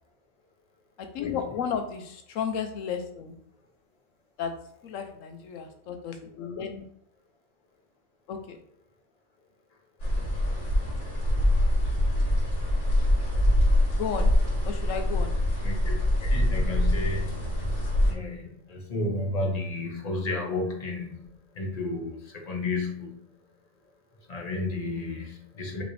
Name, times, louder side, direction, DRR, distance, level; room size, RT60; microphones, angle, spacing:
voice 1, 1.0-3.4 4.4-4.5 4.8-6.9 8.3-8.6 13.9-14.3 14.6-15.4, left 7 dB, 80° left, 6 dB, 1.0 m, -33 dB
sound 1, 10.0-18.1, left 1 dB, 65° left, 2.0 m, -24 dB
voice 2, 15.6-17.4 18.1-21.2 21.5-23.1 24.3-25.8, left 2 dB, 35° left, -1 dB, 1.1 m, -32 dB
5.2 x 3.0 x 3.2 m, 0.69 s
omnidirectional pair, 1.3 m